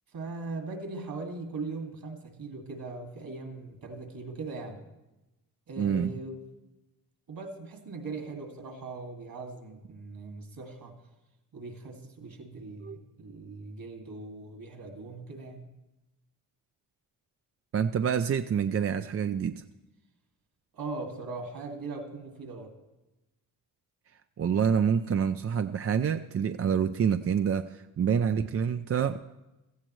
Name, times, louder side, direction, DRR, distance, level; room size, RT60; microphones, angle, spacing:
voice 1, 0.1-4.8 5.7-6.4 7.3-10.9 11.5-15.6 20.7-22.7, right 3 dB, 60° right, 3 dB, 2.3 m, -40 dB
voice 2, 5.8-6.1 12.8-13.0 17.7-19.6 24.4-29.2, right 7 dB, 40° right, 8 dB, 0.5 m, -27 dB
16.5 x 14.0 x 3.1 m, 1.0 s
cardioid pair, 70°, 38 cm